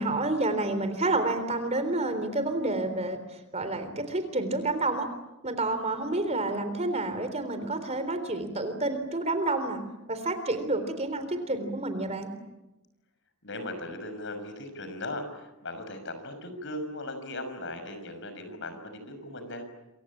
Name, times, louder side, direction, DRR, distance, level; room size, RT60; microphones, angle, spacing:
voice 1, 0.0-3.2 3.5-5.1 5.4-9.8 10.1-12.3, right 2 dB, 30° right, 9 dB, 3.6 m, -29 dB
voice 2, 13.4-19.6, left 1 dB, 55° left, 8 dB, 6.3 m, -38 dB
28.0 x 24.5 x 8.7 m, 0.98 s
head